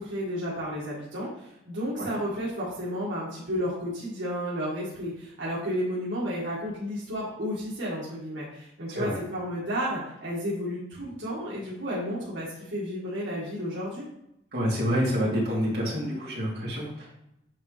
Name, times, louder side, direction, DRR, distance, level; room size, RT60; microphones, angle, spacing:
voice 1, 0.0-14.1, equal, 75° right, -8 dB, 1.8 m, -32 dB
voice 2, 8.9-9.2 14.5-17.1, equal, 55° right, -6 dB, 2.4 m, -28 dB
8.6 x 3.9 x 3.3 m, 0.81 s
head